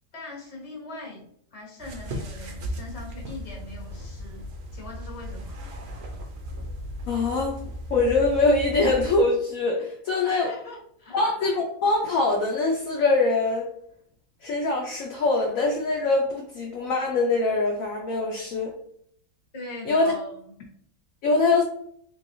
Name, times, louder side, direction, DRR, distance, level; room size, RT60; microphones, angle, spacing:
voice 1, 0.1-1.2 1.5-4.4 4.7-5.6 10.2-11.2 19.5-20.5, left 2 dB, 25° left, -2 dB, 0.9 m, -41 dB
sound 1, 1.8-9.2, equal, 75° right, 0.6 m, -36 dB
voice 2, 7.1-7.6 7.9-10.5 11.1-13.7 14.4-18.7 19.9-20.1 21.2-21.6, left 3 dB, 65° left, 1 dB, 0.9 m, -23 dB
3.4 x 3.2 x 2.6 m, 0.66 s
omnidirectional pair, 1.8 m